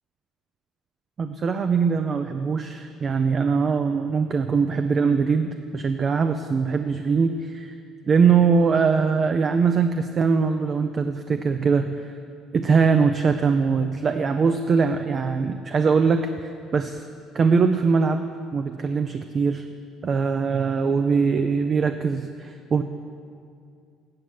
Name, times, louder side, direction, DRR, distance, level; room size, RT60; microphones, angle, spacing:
voice 1, 1.2-7.7 8.1-12.1 12.5-17.0 17.3-19.7 20.0-22.8, right 5 dB, 40° right, 8 dB, 0.4 m, -22 dB
8.6 x 7.3 x 7.6 m, 2.3 s
supercardioid pair, 85°, 0 cm